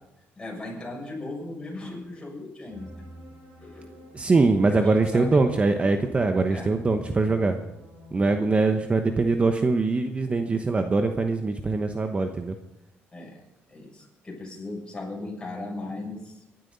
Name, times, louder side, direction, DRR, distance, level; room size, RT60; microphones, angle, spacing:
voice 1, 0.4-3.0 3.6-4.0 4.7-5.4 5.8-6.0 6.5-6.7 13.1-13.4 13.7-16.4, left 2 dB, 20° left, -2 dB, 7.1 m, -37 dB
sound 1, 2.7-8.4, left 1 dB, 75° right, 7.4 m, -46 dB
voice 2, 4.1-7.6 8.1-12.6, right 3 dB, 25° right, 6 dB, 1.0 m, -23 dB
22.5 x 12.0 x 4.1 m, 0.90 s
cardioid pair, 95°, 5 cm